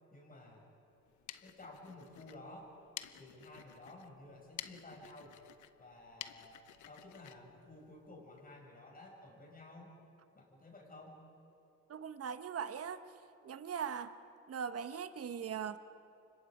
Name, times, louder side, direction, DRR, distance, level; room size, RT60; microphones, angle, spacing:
voice 1, 0.1-0.6 1.4-2.8 3.2-5.4 5.8-10.0 10.3-11.2, left 2 dB, 30° left, 0 dB, 6.7 m, -53 dB
sound 1, 1.0-8.5, left 12 dB, 75° left, 0.9 m, -52 dB
voice 2, 11.9-13.0 13.4-14.1 14.5-15.8, right 7 dB, 50° right, 10 dB, 1.2 m, -40 dB
29.5 x 25.0 x 5.0 m, 2.6 s
cardioid pair, 90°, 30 cm